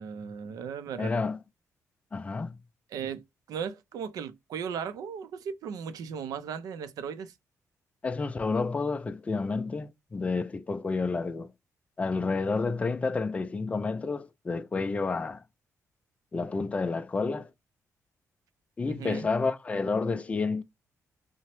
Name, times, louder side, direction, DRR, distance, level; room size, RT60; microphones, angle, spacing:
voice 1, 0.0-1.1 2.9-3.2 3.5-7.3 18.9-19.3, right 7 dB, 80° right, 0.4 m, -36 dB
voice 2, 1.0-1.4 2.1-2.6 8.0-11.5 12.0-15.4 16.3-17.5 18.8-20.6, left 4 dB, 20° left, 0.3 m, -30 dB
2.8 x 2.0 x 3.0 m
cardioid pair, 135°, 6 cm